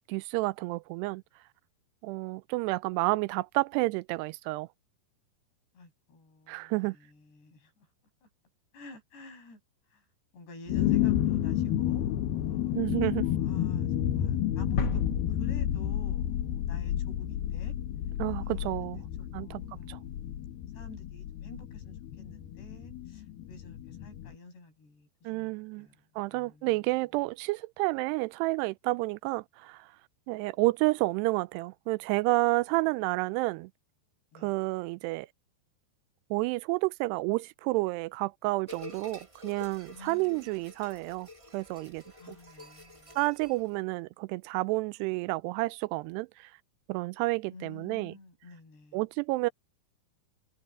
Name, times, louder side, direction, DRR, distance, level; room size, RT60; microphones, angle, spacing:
voice 1, 0.1-1.2 2.0-4.7 6.5-7.0 12.7-13.3 18.2-19.0 19.3-19.6 19.9-20.0 25.2-25.9 26.2-29.9 30.3-33.7 34.4-35.3 36.3-42.4 43.2-46.5 46.9-48.1 48.9-49.5, right 22 dB, 90° right, 2.7 m, -30 dB
voice 2, 5.7-7.9 8.2-8.3 8.7-9.6 9.9-10.1 10.3-12.1 12.5-15.0 15.3-17.7 18.4-19.0 19.4-26.0 26.3-27.0 34.3-34.5 39.9-40.6 42.2-43.2 47.5-49.0, left 2 dB, 90° left, 9.8 m, -50 dB
sound 1, 10.7-24.3, left 11 dB, 75° left, 2.8 m, -31 dB
sound 2, 14.8-16.7, left 4 dB, 55° left, 1.1 m, -34 dB
sound 3, 38.7-43.8, left 2 dB, 20° right, 0.8 m, -49 dB
omnidirectional pair, 4.7 m